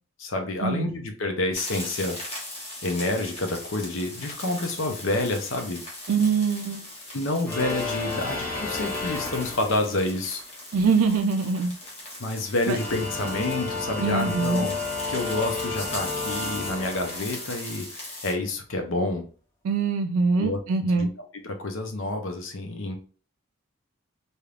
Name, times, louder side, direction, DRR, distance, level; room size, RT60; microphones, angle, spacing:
voice 1, 0.2-2.4 2.8-5.8 7.1-10.4 12.2-14.8 15.1-19.2 20.4-20.6 20.9-21.1 21.3-23.0, left 2 dB, 65° left, 4 dB, 0.7 m, -28 dB
sound 1, 1.5-18.3, left 1 dB, 30° left, 1.0 m, -39 dB
voice 2, 6.1-6.8 10.7-11.7 12.7-12.8 14.0-14.7 19.6-21.1, right 4 dB, 90° right, 6 dB, 0.4 m, -23 dB
sound 2, 7.4-10.2 12.5-17.7, left 3 dB, 10° left, 1.2 m, -32 dB
3.3 x 2.8 x 2.4 m, 0.38 s
head